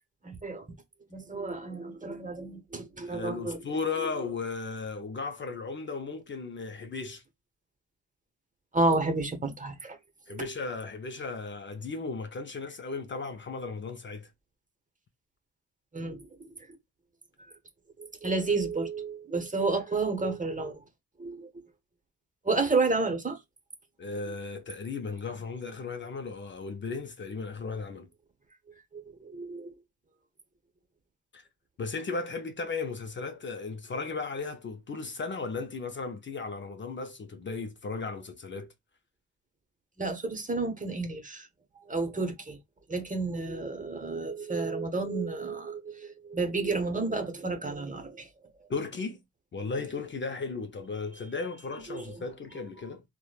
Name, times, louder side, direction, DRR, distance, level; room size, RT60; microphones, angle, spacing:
voice 1, 0.2-0.6 1.1-3.6 8.7-10.0 10.3-10.4 15.9-16.2 18.2-20.7 21.2-21.5 22.4-23.4 28.9-29.7 40.0-41.5 41.9-42.6 42.9-48.3 51.9-52.0, right 3 dB, 25° right, 0.9 m, -31 dB
voice 2, 3.0-7.2 10.3-14.3 24.0-28.1 31.3-31.4 31.8-38.7 48.7-49.2 49.5-53.0, left 4 dB, 40° left, 0.5 m, -36 dB
3.0 x 2.2 x 2.3 m
supercardioid pair, 45°, 30 cm